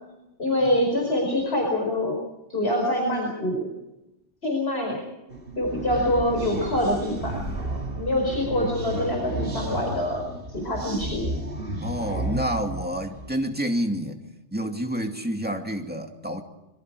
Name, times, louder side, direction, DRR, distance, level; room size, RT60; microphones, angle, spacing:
voice 1, 0.4-2.2 2.5-3.7 4.4-5.0 5.6-7.4 8.0-11.3, left 1 dB, 60° left, 5.2 m, -25 dB
sound 1, 5.3-13.4, right 1 dB, 50° right, 2.7 m, -33 dB
voice 2, 11.8-14.2 14.5-16.4, equal, 10° right, 2.4 m, -28 dB
26.0 x 22.5 x 4.8 m
omnidirectional pair, 1.2 m